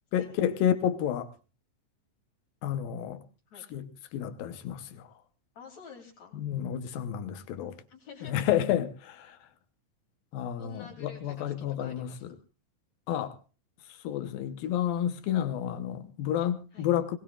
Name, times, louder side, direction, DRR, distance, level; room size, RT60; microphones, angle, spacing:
voice 1, 0.1-1.3 2.6-3.2 3.7-5.1 6.3-7.7 8.2-8.9 9.2-9.4 10.3-12.4 13.1-13.4 14.0-17.2, left 10 dB, 85° left, 2.9 m, -30 dB
voice 2, 5.6-6.4 7.9-8.6 10.6-12.2 16.7-16.9, left 5 dB, 50° left, 4.2 m, -49 dB
21.5 x 19.5 x 2.4 m
omnidirectional pair, 4.0 m